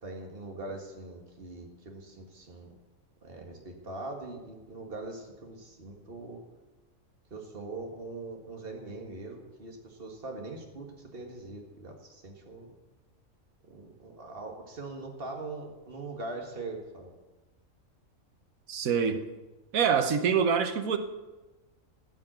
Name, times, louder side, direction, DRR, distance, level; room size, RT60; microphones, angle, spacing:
voice 1, 0.0-2.7 3.2-6.4 7.3-12.7 13.7-17.1, right 2 dB, 45° right, 1 dB, 2.1 m, -42 dB
voice 2, 18.7-19.2 19.7-21.0, right 7 dB, 85° right, 8 dB, 1.5 m, -25 dB
15.0 x 5.9 x 9.0 m, 1.1 s
omnidirectional pair, 1.4 m